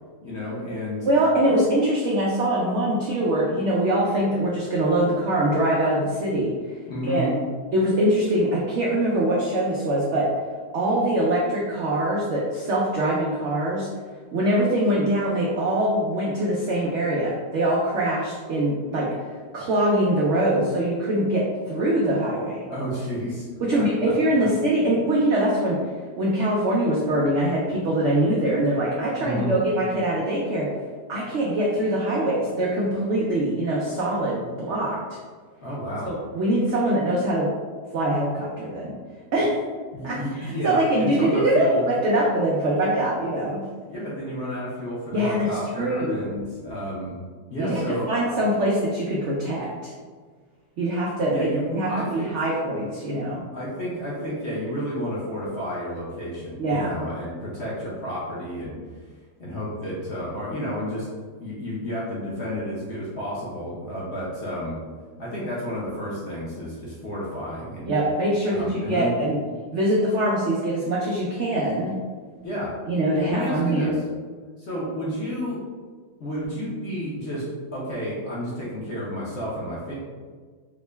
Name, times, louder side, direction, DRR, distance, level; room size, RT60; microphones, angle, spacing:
voice 1, 0.2-1.1 6.9-7.3 22.7-23.5 23.7-24.1 29.2-29.5 35.6-36.1 39.9-41.8 43.9-47.1 47.5-48.1 51.3-52.3 53.5-58.7 59.4-61.1 61.4-64.8 65.2-67.9 68.5-69.1 72.4-72.7 73.2-74.0 74.6-75.6 76.2-79.9, equal, 55° left, -7 dB, 0.8 m, -31 dB
voice 2, 1.1-6.8 7.0-7.3 7.7-10.2 10.7-13.9 14.3-19.1 19.5-22.6 23.6-25.8 26.2-30.7 31.1-35.0 36.0-37.5 37.9-38.9 39.3-39.6 40.0-43.6 45.1-45.5 45.7-46.3 47.6-49.9 50.8-51.5 51.7-53.5 56.6-57.0 67.9-69.4 69.7-71.9 72.9-73.9, right 1 dB, 90° right, -4 dB, 0.6 m, -23 dB
3.7 x 2.1 x 3.2 m, 1.5 s
omnidirectional pair, 1.8 m